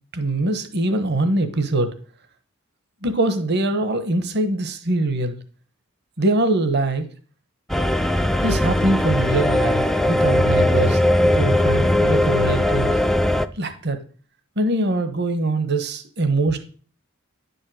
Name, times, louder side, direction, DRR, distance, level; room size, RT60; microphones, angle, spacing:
voice 1, 0.1-1.9 3.0-5.4 6.2-7.0 8.4-13.0 13.5-14.0 14.6-16.6, right 2 dB, 55° right, 8 dB, 1.2 m, -23 dB
sound 1, 7.7-13.5, left 1 dB, ahead, 0.4 m, -19 dB
10.5 x 5.4 x 7.8 m, 0.41 s
head